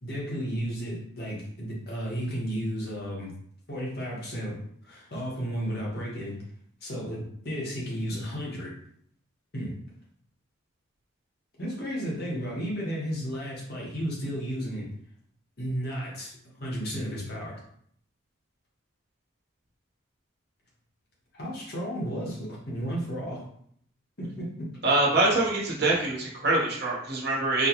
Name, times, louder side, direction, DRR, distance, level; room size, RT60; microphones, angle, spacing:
voice 1, 0.0-3.3 3.7-6.4 6.8-8.7 9.5-9.8 11.6-14.9 15.6-17.6 21.3-23.5 24.2-24.7, equal, 50° left, -4 dB, 1.1 m, -33 dB
voice 2, 24.8-27.7, right 2 dB, 50° right, -4 dB, 1.2 m, -24 dB
4.3 x 2.3 x 3.0 m, 0.64 s
head